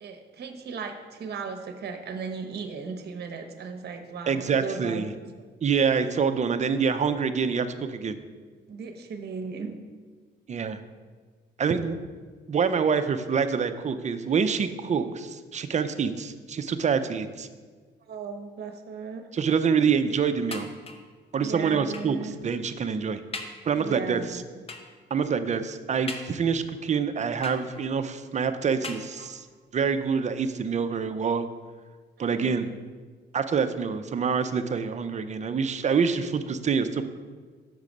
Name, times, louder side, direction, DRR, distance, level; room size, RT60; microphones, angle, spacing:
voice 1, 0.0-5.1 8.7-9.8 18.1-19.3 21.4-22.4 23.7-24.6 32.2-32.7, right 5 dB, 55° right, 6 dB, 0.9 m, -37 dB
voice 2, 4.3-5.1 5.6-7.7 7.9-8.2 10.5-10.8 11.6-12.0 12.5-17.5 19.3-20.7 21.3-22.2 22.4-23.2 23.7-24.4 25.1-29.5 29.7-31.5 32.2-32.7 33.3-37.0, right 6 dB, 35° right, 10 dB, 0.5 m, -26 dB
sound 1, 20.5-21.2 21.9-22.3 22.8-22.9 23.3-23.7 24.7-25.0 26.1-26.7 27.4-28.0 28.8-29.5 30.3-30.4 30.8-30.9, left 2 dB, 30° left, 0.8 m, -40 dB
6.7 x 4.8 x 5.2 m, 1.5 s
cardioid pair, 90°, 20 cm